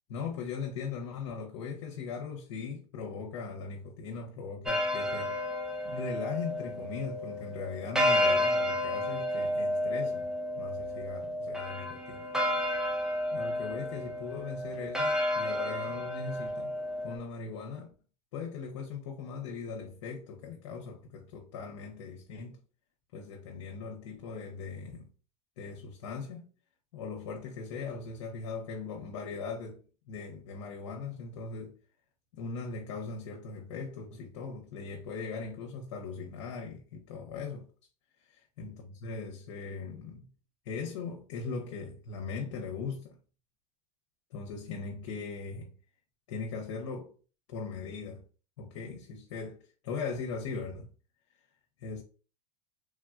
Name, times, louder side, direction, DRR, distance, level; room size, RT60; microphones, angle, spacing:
voice 1, 0.1-5.4 5.8-10.3 10.6-12.3 13.3-16.7 17.0-17.9 18.3-22.6 23.1-25.1 25.6-26.5 26.9-29.8 30.1-31.8 32.3-37.7 38.3-40.3 40.6-43.2 44.3-45.7 46.3-47.1 47.5-48.2 48.6-50.9 51.8-52.0, left 5 dB, 85° left, 0.6 m, -39 dB
sound 1, 4.7-17.2, left 1 dB, 5° right, 0.5 m, -31 dB
3.2 x 2.2 x 2.3 m
supercardioid pair, 120°, 15 cm